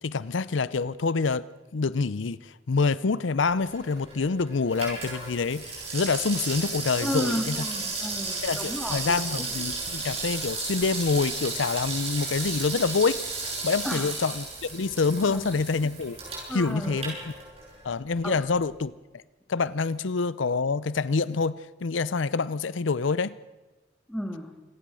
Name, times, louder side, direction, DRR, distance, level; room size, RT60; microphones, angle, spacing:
voice 1, 0.0-1.4 1.7-7.6 8.4-13.3 13.6-16.2 16.5-17.2 17.8-18.9 19.5-23.3, left 4 dB, 90° left, 18 dB, 0.6 m, -26 dB
Water tap faucet / Sink (filling or washing), 3.6-17.9 18.2-18.3, right 3 dB, 30° right, 7.4 m, -34 dB
voice 2, 7.0-9.5 13.8-14.1 15.2-15.5 16.5-17.0 18.2-18.4 24.1-24.5, equal, 5° left, 5 dB, 2.2 m, -33 dB
26.0 x 17.5 x 6.3 m, 1.1 s
head